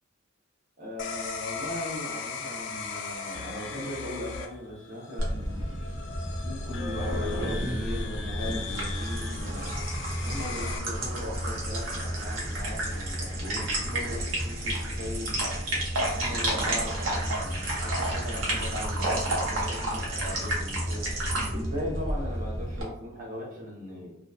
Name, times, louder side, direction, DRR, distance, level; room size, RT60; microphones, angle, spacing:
voice 1, 0.8-5.7 6.4-9.7 10.2-15.4 16.1-21.1 21.5-24.1, left 1 dB, 45° right, -3 dB, 0.8 m, -38 dB
sound 1, 1.0-10.8, left 5 dB, 60° left, 0.4 m, -38 dB
sound 2, 5.2-22.8, right 1 dB, 75° right, 0.8 m, -30 dB
2.6 x 2.2 x 2.3 m, 0.76 s
head